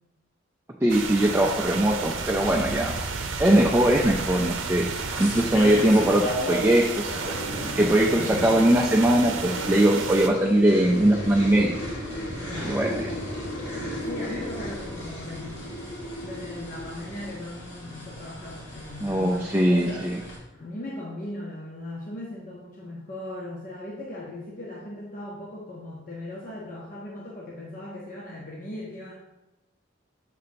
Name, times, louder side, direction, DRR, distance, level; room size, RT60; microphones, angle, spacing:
voice 1, 0.8-2.9 3.4-4.9 5.2-7.3 7.8-11.8 12.6-12.9 19.0-20.2, right 1 dB, 10° right, -1 dB, 0.4 m, -21 dB
sound 1, 0.9-10.3, right 4 dB, 75° right, 0.6 m, -32 dB
sound 2, 3.8-20.4, equal, 65° left, 1.8 m, -39 dB
sound 3, 7.0-17.4, equal, 85° left, 1.6 m, -35 dB
voice 2, 8.1-8.5 12.5-12.8 14.0-15.7 16.2-19.9 20.5-29.1, left 1 dB, 45° left, -4 dB, 0.8 m, -38 dB
6.7 x 2.8 x 5.1 m, 1.0 s
head